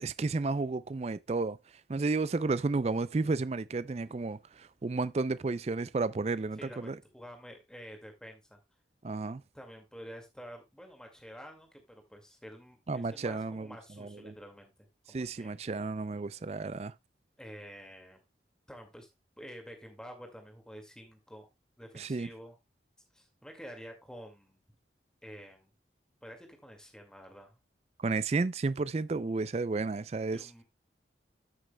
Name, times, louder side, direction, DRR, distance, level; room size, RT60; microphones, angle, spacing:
voice 1, 0.0-1.6 1.9-7.0 9.0-9.4 12.9-13.7 14.0-14.3 15.1-16.9 22.0-22.3 28.0-30.5, right 3 dB, 35° right, 0.4 m, -32 dB
voice 2, 6.6-8.6 9.5-14.7 15.1-15.6 17.4-18.2 18.7-19.1 19.4-21.5 21.8-22.5 23.1-24.6 25.2-25.7 26.2-27.6 30.3-30.6, equal, 5° left, 2.0 m, -49 dB
13.5 x 6.4 x 2.2 m
head